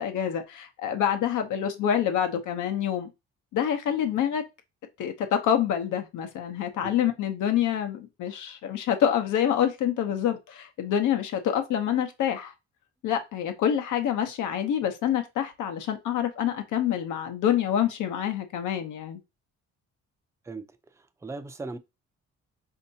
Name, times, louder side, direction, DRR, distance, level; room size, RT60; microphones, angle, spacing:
voice 1, 0.0-3.1 3.5-4.4 5.0-12.5 13.0-19.2, left 9 dB, 80° left, 0.9 m, -27 dB
voice 2, 20.4-21.8, right 3 dB, 10° right, 0.4 m, -39 dB
4.5 x 2.8 x 2.7 m
cardioid pair, 90°, 30 cm